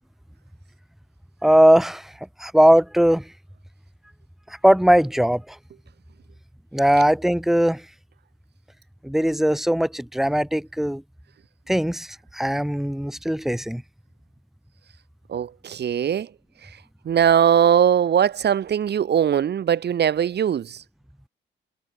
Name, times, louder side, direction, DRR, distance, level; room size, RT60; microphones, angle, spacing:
voice 1, 1.4-2.1 2.4-3.3 4.5-5.6 6.7-7.8 9.0-11.0 11.7-13.8, equal, ahead, 2.9 m, -19 dB
voice 2, 15.3-16.3 16.6-16.7 17.1-20.8, right 9 dB, 60° right, 3.7 m, -20 dB
cardioid pair, 90°, 20 cm